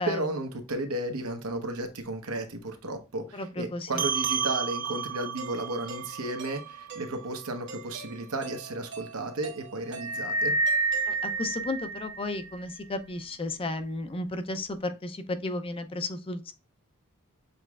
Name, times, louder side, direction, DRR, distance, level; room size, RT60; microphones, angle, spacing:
voice 1, 0.0-10.5, right 2 dB, 80° right, 1.0 m, -33 dB
voice 2, 3.3-4.0 11.1-16.5, left 2 dB, 25° left, 0.5 m, -33 dB
sound 1, 4.0-8.8, right 8 dB, 40° right, 0.5 m, -34 dB
Doorbell, 5.4-11.7, right 3 dB, 55° right, 1.4 m, -46 dB
sound 2, 9.9-12.6, right 3 dB, 65° left, 0.8 m, -29 dB
6.6 x 3.1 x 2.3 m
head